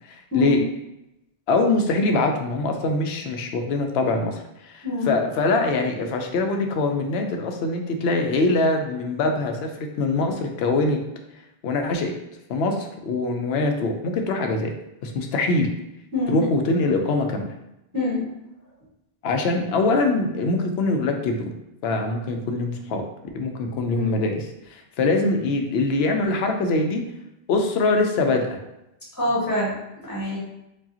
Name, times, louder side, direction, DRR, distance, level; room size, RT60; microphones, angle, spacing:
voice 1, 0.1-0.6 1.5-11.0 11.6-12.2 12.5-14.7 15.0-15.7 16.3-17.5 19.2-21.4 21.8-23.0 23.3-27.0 27.5-28.6, left 3 dB, 80° left, 4 dB, 0.8 m, -23 dB
voice 2, 17.9-18.3 23.9-24.2 29.2-29.8 30.0-30.4, left 2 dB, 20° left, -8 dB, 1.5 m, -25 dB
4.7 x 2.4 x 2.7 m, 0.88 s
omnidirectional pair, 1.0 m